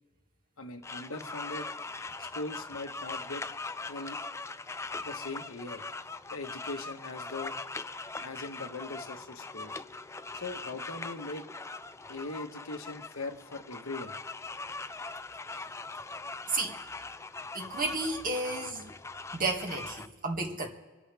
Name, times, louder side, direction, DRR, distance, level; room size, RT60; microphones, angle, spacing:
voice 1, 0.6-1.7 2.2-3.4 3.9-4.2 5.0-5.8 6.3-7.6 8.2-9.8 10.3-11.5 12.1-14.1, left 2 dB, 90° left, 5 dB, 1.3 m, -40 dB
sound 1, 0.8-20.1, left 3 dB, 15° left, 0.4 m, -41 dB
voice 2, 17.5-18.9 19.3-20.7, right 2 dB, 45° right, 0 dB, 2.2 m, -32 dB
26.5 x 11.0 x 3.5 m, 1.4 s
head